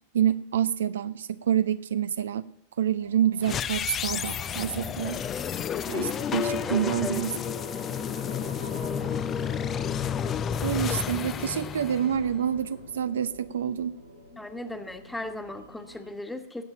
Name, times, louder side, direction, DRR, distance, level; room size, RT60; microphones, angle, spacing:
voice 1, 0.1-2.4 2.8-5.2 5.9-7.3 10.6-14.0, right 9 dB, 65° right, 13 dB, 0.5 m, -27 dB
sound 1, 3.0-16.1, right 1 dB, 85° right, 4.1 m, -47 dB
sound 2, 3.4-12.6, left 8 dB, 25° left, 0.6 m, -31 dB
voice 2, 5.9-6.3 6.7-7.2 8.7-9.2 14.4-16.6, left 2 dB, 5° left, 7 dB, 1.5 m, -37 dB
18.0 x 7.3 x 7.3 m, 0.72 s
figure-of-eight pair, 90°, 0 cm